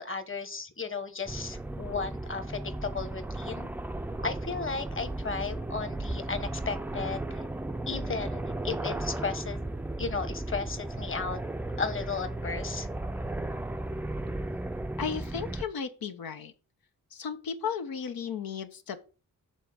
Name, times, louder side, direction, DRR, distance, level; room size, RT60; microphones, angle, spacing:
voice 1, 0.0-3.7 4.2-7.5 7.9-9.6 10.0-11.4 11.8-12.9, left 5 dB, 35° left, 10 dB, 1.2 m, -35 dB
sound 1, 1.3-15.7, right 2 dB, 5° right, 0.4 m, -35 dB
voice 2, 15.0-16.5 17.1-19.0, left 6 dB, 85° left, 8 dB, 1.0 m, -34 dB
7.4 x 3.7 x 6.5 m, 0.36 s
cardioid pair, 75°, 35 cm